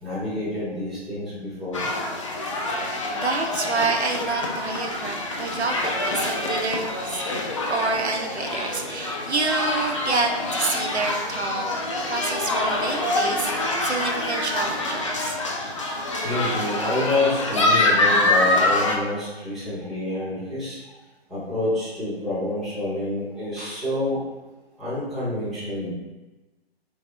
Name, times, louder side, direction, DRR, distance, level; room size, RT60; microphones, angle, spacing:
voice 1, 0.0-1.8 15.9-20.8 21.3-24.2 24.8-25.9, left 1 dB, ahead, -12 dB, 0.7 m, -28 dB
sound 1, 1.7-19.0, left 2 dB, 30° left, 0.5 m, -25 dB
voice 2, 2.7-7.2 7.7-11.7 12.1-15.4, right 3 dB, 85° right, 3 dB, 0.7 m, -28 dB
3.4 x 3.3 x 3.3 m, 1.1 s
figure-of-eight pair, 140°, 32 cm